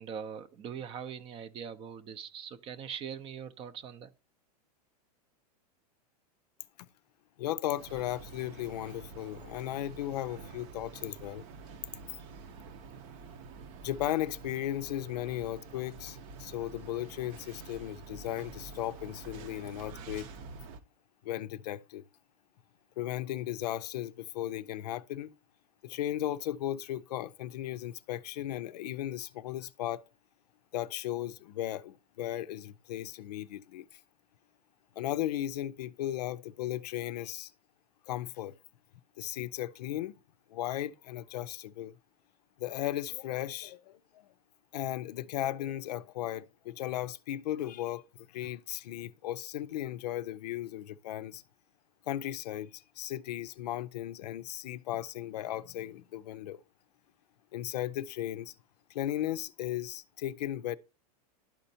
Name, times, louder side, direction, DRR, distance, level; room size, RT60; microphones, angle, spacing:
voice 1, 0.0-4.1, right 7 dB, 25° right, 0.5 m, -42 dB
voice 2, 7.4-11.4 13.8-20.3 21.2-22.0 23.0-25.3 25.8-30.0 30.7-34.0 35.0-37.5 38.1-38.5 39.2-40.2 40.5-41.9 42.6-44.3 44.7-48.0 48.3-51.4 52.1-56.6 57.5-58.5 58.9-60.8, left 13 dB, 85° left, 0.4 m, -36 dB
sound 1, 7.7-20.8, right 5 dB, 55° right, 0.8 m, -48 dB
12.0 x 4.3 x 2.7 m
supercardioid pair, 135°, 20 cm